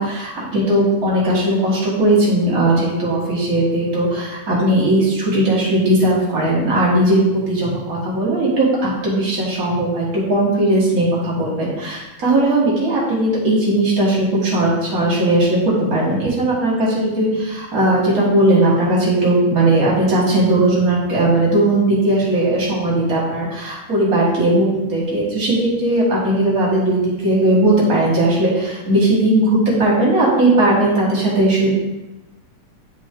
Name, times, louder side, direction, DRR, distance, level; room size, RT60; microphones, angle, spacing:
voice 1, 0.0-15.6 15.9-31.7, right 1 dB, 40° right, -5 dB, 1.4 m, -17 dB
9.4 x 3.6 x 3.7 m, 1.0 s
omnidirectional pair, 3.7 m